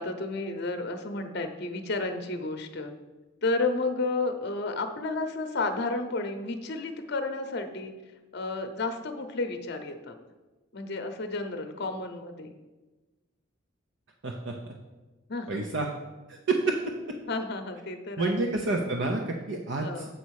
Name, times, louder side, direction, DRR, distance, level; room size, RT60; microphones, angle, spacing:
voice 1, 0.0-2.9 3.4-7.9 8.3-10.1 10.7-12.5 15.3-15.6 17.3-18.7 19.8-20.1, left 3 dB, 55° left, 7 dB, 0.7 m, -32 dB
voice 2, 14.2-14.7 15.5-15.9 16.3-16.8 18.2-20.1, right 3 dB, 60° right, 1 dB, 0.7 m, -29 dB
8.0 x 4.1 x 6.3 m, 1.2 s
head